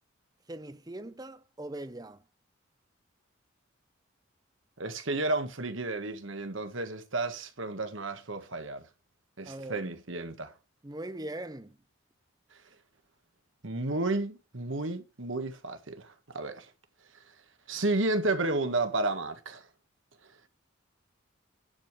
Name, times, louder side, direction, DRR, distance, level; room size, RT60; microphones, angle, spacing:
voice 1, 0.5-2.2 9.5-9.9 10.8-11.8, right 1 dB, 20° right, 0.6 m, -41 dB
voice 2, 4.8-8.9 9.4-10.5 13.6-16.7 17.7-19.6, right 2 dB, 75° right, 1.6 m, -32 dB
10.5 x 5.1 x 6.1 m
head